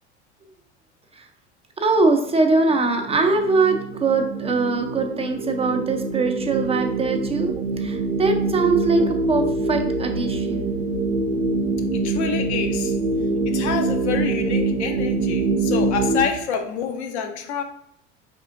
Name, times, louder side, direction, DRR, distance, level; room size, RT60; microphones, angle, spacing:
voice 1, 1.8-10.7, right 3 dB, 15° right, 4 dB, 0.4 m, -22 dB
sound 1, 2.4-16.2, right 3 dB, 85° right, 0.5 m, -24 dB
voice 2, 11.9-13.0 13.5-17.6, left 6 dB, 70° left, 5 dB, 0.8 m, -27 dB
4.9 x 3.6 x 2.4 m, 0.78 s
hypercardioid pair, 80°, 35 cm